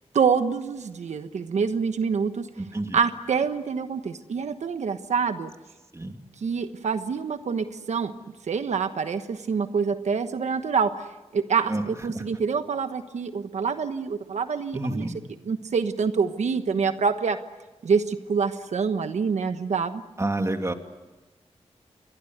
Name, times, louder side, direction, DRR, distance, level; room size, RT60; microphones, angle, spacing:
voice 1, 0.1-2.5 2.9-5.5 6.4-8.1 8.5-11.0 11.3-15.1 15.4-17.4 17.8-20.0, right 5 dB, 90° right, 9 dB, 1.2 m, -26 dB
voice 2, 2.6-3.0 5.9-6.2 11.7-12.2 14.7-15.2 20.2-20.7, right 2 dB, 25° right, 5 dB, 2.6 m, -29 dB
28.5 x 22.5 x 8.0 m, 1.1 s
wide cardioid pair, 80°, 12 cm